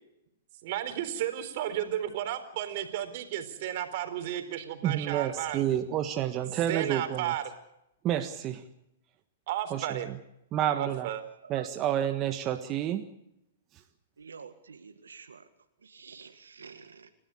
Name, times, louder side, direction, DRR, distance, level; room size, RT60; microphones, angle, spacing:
voice 1, 0.6-5.6 6.7-7.5 9.5-10.1 10.8-11.2, right 11 dB, 55° right, 9 dB, 4.1 m, -33 dB
voice 2, 4.8-7.3 8.0-8.6 9.7-10.0 10.5-11.1 11.5-13.1, right 11 dB, 30° right, 6 dB, 1.5 m, -29 dB
voice 3, 14.2-15.4 15.8-17.1, right 5 dB, 85° right, 7 dB, 1.8 m, -49 dB
29.5 x 13.0 x 8.5 m, 0.84 s
hypercardioid pair, 120°, 0 cm